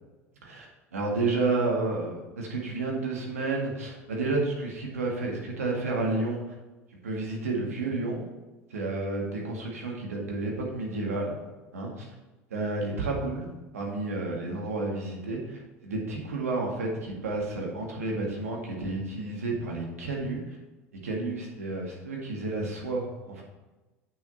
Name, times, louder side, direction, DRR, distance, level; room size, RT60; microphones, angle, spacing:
voice 1, 0.9-6.4 7.0-8.2 8.7-11.4 11.7-12.1 12.5-20.6 21.0-23.4, right 3 dB, 90° right, -1 dB, 1.9 m, -31 dB
8.2 x 6.8 x 4.1 m, 1.1 s
hypercardioid pair, 75°, 8 cm